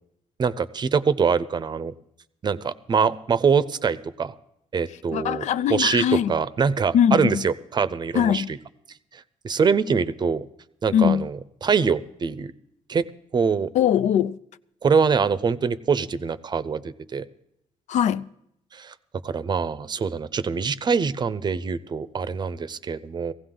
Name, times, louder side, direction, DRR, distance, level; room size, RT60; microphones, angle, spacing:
voice 1, 0.4-1.9 2.4-4.3 4.7-5.4 5.7-8.6 9.1-10.5 10.8-12.5 12.9-13.0 13.3-13.7 14.8-17.2 18.7-18.9 19.2-23.3, right 5 dB, 35° right, 0.6 m, -24 dB
voice 2, 5.1-6.3 6.9-7.4 8.1-8.5 10.9-11.3 13.7-14.4 17.9-18.3, left 9 dB, 75° left, 0.5 m, -21 dB
17.5 x 16.0 x 3.8 m
cardioid pair, 120°, 12 cm